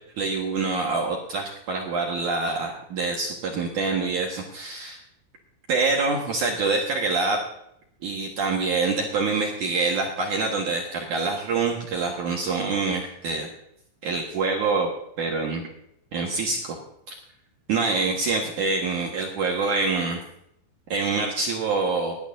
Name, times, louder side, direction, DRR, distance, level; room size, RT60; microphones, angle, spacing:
voice 1, 0.2-5.0 5.7-7.4 8.0-13.5 14.0-14.9 15.2-15.6 16.1-16.8 17.1-17.2 17.7-20.2 20.9-22.2, right 4 dB, 60° right, -1 dB, 2.3 m, -25 dB
20.0 x 11.0 x 2.7 m, 0.73 s
omnidirectional pair, 5.3 m